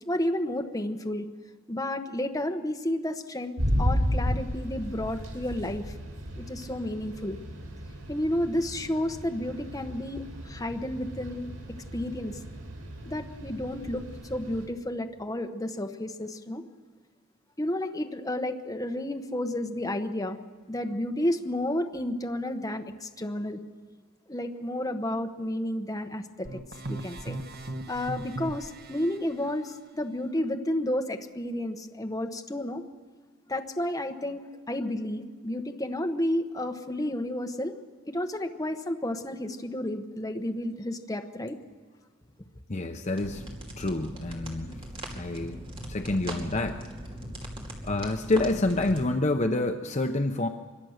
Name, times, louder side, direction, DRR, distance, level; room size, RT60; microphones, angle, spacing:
voice 1, 0.1-1.3 1.7-5.9 6.4-7.4 8.1-11.5 11.9-12.4 13.0-14.0 14.3-16.6 17.6-20.4 20.7-23.6 24.3-26.5 26.9-27.4 27.9-32.8 33.5-34.4 34.7-37.7 38.1-41.5, left 1 dB, 15° left, 4 dB, 1.2 m, -31 dB
sound 1, 3.6-14.7, equal, 85° right, 5.9 m, -34 dB
sound 2, 26.4-29.2, right 2 dB, 45° right, 1.1 m, -37 dB
voice 2, 42.7-43.4 43.8-44.8 45.1-45.6 45.9-46.8 47.8-50.5, left 2 dB, 35° left, 5 dB, 0.8 m, -28 dB
sound 3, 43.2-49.1, right 1 dB, 25° right, 2.6 m, -40 dB
25.0 x 22.5 x 6.6 m, 1.5 s
head